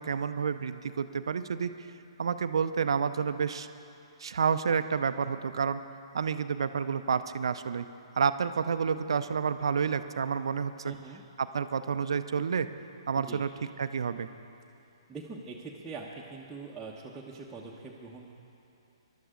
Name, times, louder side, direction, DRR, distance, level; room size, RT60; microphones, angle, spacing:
voice 1, 0.0-1.9 2.2-3.7 4.2-5.8 6.1-7.9 8.2-10.9 11.4-12.7 13.1-13.5 13.8-14.3, right 6 dB, 65° right, 11 dB, 0.6 m, -29 dB
voice 2, 10.8-11.2 13.2-13.4 15.1-18.4, right 4 dB, 10° right, -6 dB, 1.1 m, -43 dB
21.5 x 12.0 x 3.8 m, 2.7 s
figure-of-eight pair, 125°, 3 cm